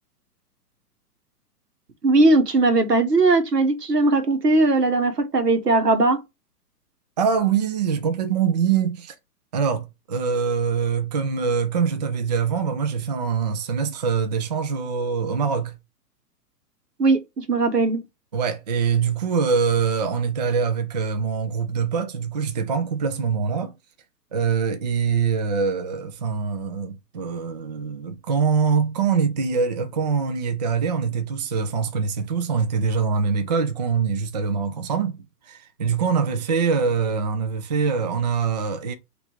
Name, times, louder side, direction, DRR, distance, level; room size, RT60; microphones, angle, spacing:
voice 1, 2.0-6.2 17.0-18.0, right 2 dB, 85° right, 1.1 m, -19 dB
voice 2, 7.2-9.1 9.5-15.7 18.3-23.7 24.3-38.9, right 6 dB, 30° right, 0.4 m, -24 dB
3.2 x 2.6 x 4.3 m
figure-of-eight pair, 120°, 47 cm